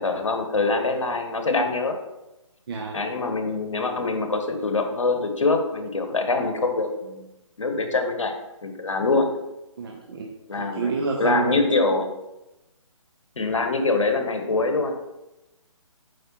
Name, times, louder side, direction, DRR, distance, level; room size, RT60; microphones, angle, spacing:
voice 1, 0.0-1.9 2.9-7.3 7.6-8.3 8.6-9.3 10.5-10.9 11.2-12.1 13.4-14.9, left 3 dB, 65° left, 5 dB, 1.1 m, -24 dB
voice 2, 2.7-3.0 9.8-11.6, right 5 dB, 45° right, 0 dB, 0.8 m, -28 dB
7.8 x 5.1 x 3.0 m, 0.97 s
figure-of-eight pair, 140°, 17 cm